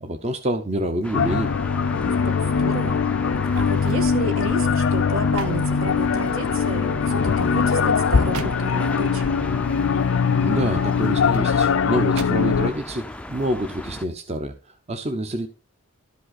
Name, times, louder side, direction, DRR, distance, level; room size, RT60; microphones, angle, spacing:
voice 1, 0.0-1.5 10.4-14.6 14.9-15.5, right 1 dB, 30° right, 0.7 m, -27 dB
sound 1, 1.0-14.1, left 1 dB, 5° left, 0.4 m, -37 dB
sound 2, 1.1-12.7, left 6 dB, 65° left, 0.4 m, -21 dB
voice 2, 1.9-3.0 3.6-9.4, right 2 dB, 70° right, 1.6 m, -31 dB
sound 3, 3.4-4.1 4.5-6.5 7.2-9.0 10.7-11.5 12.2-12.8 13.2-13.5, right 5 dB, 90° right, 0.7 m, -41 dB
12.5 x 5.3 x 4.0 m
head